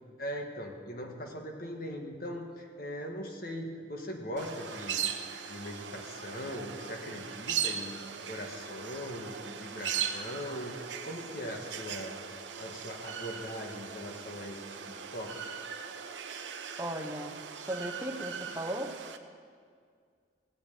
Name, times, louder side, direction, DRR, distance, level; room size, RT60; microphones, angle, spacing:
voice 1, 0.2-5.1 5.4-8.0 8.2-12.1 12.6-15.3, equal, 50° left, 2 dB, 1.7 m, -40 dB
sound 1, 4.4-19.2, right 8 dB, 85° right, 0.8 m, -39 dB
voice 2, 16.8-18.9, right 1 dB, 15° right, 3 dB, 0.8 m, -37 dB
17.0 x 5.9 x 8.7 m, 2.1 s
head